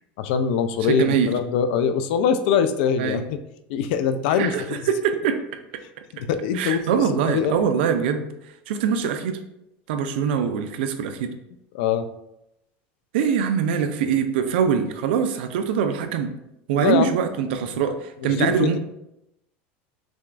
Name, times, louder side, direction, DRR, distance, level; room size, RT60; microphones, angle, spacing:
voice 1, 0.2-3.2 3.7-4.8 6.2-7.6 11.7-12.1 16.8-17.1 18.2-18.8, left 7 dB, 65° left, 10 dB, 0.4 m, -23 dB
voice 2, 0.8-1.3 3.0-3.2 4.4-5.4 6.5-8.3 8.7-9.4 9.9-11.3 13.1-16.3 16.7-18.8, right 7 dB, 80° right, 8 dB, 0.5 m, -23 dB
6.0 x 2.3 x 2.5 m, 0.84 s
supercardioid pair, 165°, 6 cm